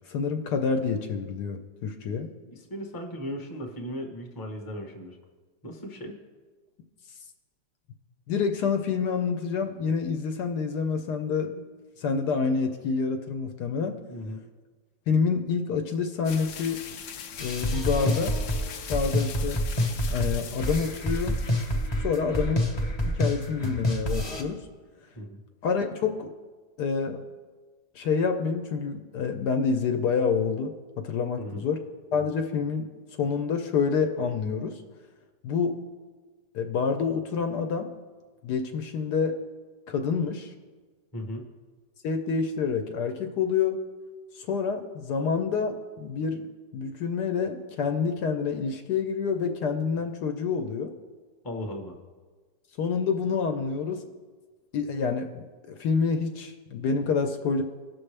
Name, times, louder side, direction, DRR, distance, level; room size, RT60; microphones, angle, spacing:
voice 1, 0.1-2.3 8.3-11.6 12.0-14.0 15.1-16.8 17.4-18.4 18.9-19.6 20.1-21.4 22.0-22.6 23.0-24.7 25.6-26.3 26.8-27.2 27.9-31.8 32.1-32.9 33.2-34.8 35.4-35.8 36.5-37.9 38.4-39.4 39.9-40.5 42.0-43.8 44.3-46.5 46.7-50.9 52.8-54.1 54.7-57.6, left 5 dB, 70° left, 6 dB, 1.1 m, -27 dB
voice 2, 2.5-5.2 5.6-6.2 14.1-14.4 25.1-25.4 31.4-31.6 41.1-41.5 51.4-51.9, equal, 15° left, 2 dB, 0.8 m, -37 dB
sound 1, 16.2-21.9, left 8 dB, 90° left, 0.6 m, -41 dB
sound 2, 17.4-24.4, equal, 35° left, 0.4 m, -27 dB
18.0 x 6.1 x 3.3 m, 1.4 s
omnidirectional pair, 1.9 m